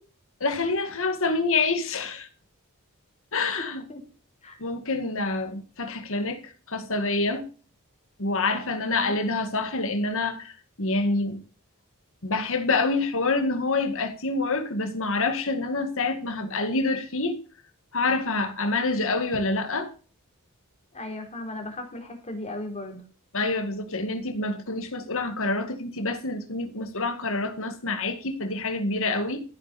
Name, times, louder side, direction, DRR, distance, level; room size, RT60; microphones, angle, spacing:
voice 1, 0.4-2.3 3.3-3.8 4.6-7.4 8.2-11.4 12.2-17.4 17.9-19.9 23.3-29.4, left 3 dB, 65° left, 2.1 m, -27 dB
voice 2, 8.8-9.2 20.9-23.0, left 1 dB, 30° left, 3.8 m, -36 dB
14.5 x 9.0 x 4.3 m
head